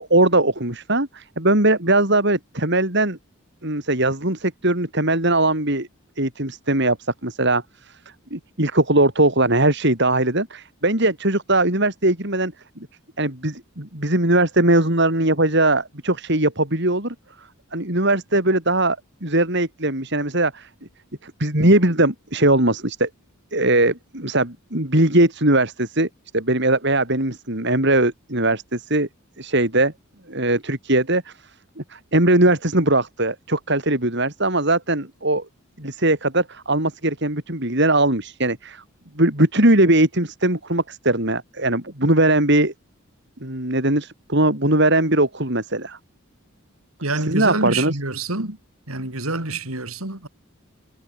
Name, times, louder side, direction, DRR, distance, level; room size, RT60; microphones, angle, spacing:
voice 1, 0.0-3.2 3.6-5.9 6.2-8.0 8.3-12.5 13.2-17.1 17.7-20.7 21.2-23.1 23.5-26.1 26.3-29.1 29.4-29.9 30.3-31.3 31.8-35.4 35.8-38.8 39.1-42.7 43.4-46.0 47.1-48.0, right 2 dB, 55° right, 5.1 m, -20 dB
voice 2, 47.0-48.6 48.9-50.3, right 2 dB, 85° right, 4.4 m, -27 dB
head